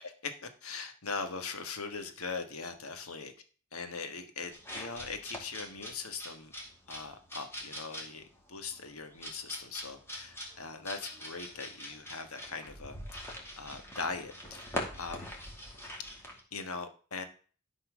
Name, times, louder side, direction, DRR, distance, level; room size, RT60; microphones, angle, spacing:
voice 1, 0.2-3.3 3.7-6.5 6.9-15.3 16.5-17.2, left 4 dB, 80° left, 8 dB, 1.5 m, -41 dB
sound 1, 4.5-16.4, left 1 dB, 10° left, 2.4 m, -43 dB
12.0 x 4.3 x 6.2 m, 0.40 s
head